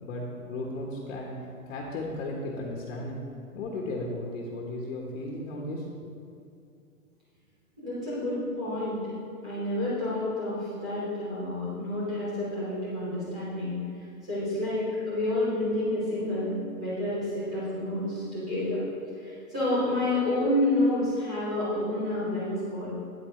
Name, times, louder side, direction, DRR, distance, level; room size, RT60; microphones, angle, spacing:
voice 1, 0.0-1.3 1.7-3.2 3.5-6.1, left 1 dB, 50° left, -2 dB, 1.3 m, -35 dB
voice 2, 7.8-9.0 9.4-13.7 14.2-18.8 19.2-22.9, left 1 dB, 5° right, -11 dB, 0.3 m, -29 dB
9.1 x 8.4 x 3.3 m, 2.6 s
hypercardioid pair, 150°, 44 cm